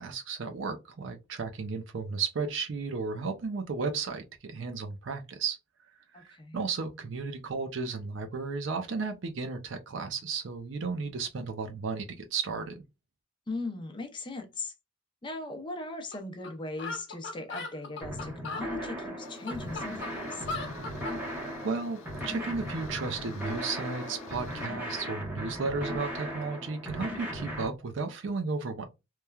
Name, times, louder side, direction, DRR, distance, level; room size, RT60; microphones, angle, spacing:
voice 1, 0.0-5.6 6.1-12.8 21.6-28.8, right 4 dB, 65° right, 0.5 m, -34 dB
voice 2, 6.1-6.7 13.5-14.7 15.2-20.4, left 2 dB, 25° left, 0.5 m, -39 dB
sound 1, 16.1-16.2 16.4-16.5 16.8-18.7 19.2-21.2, left 3 dB, 60° left, 0.8 m, -37 dB
sound 2, 18.0-27.7, equal, 10° right, 0.8 m, -37 dB
sound 3, 19.2-24.7, left 4 dB, 90° left, 0.5 m, -49 dB
3.1 x 2.2 x 2.3 m
head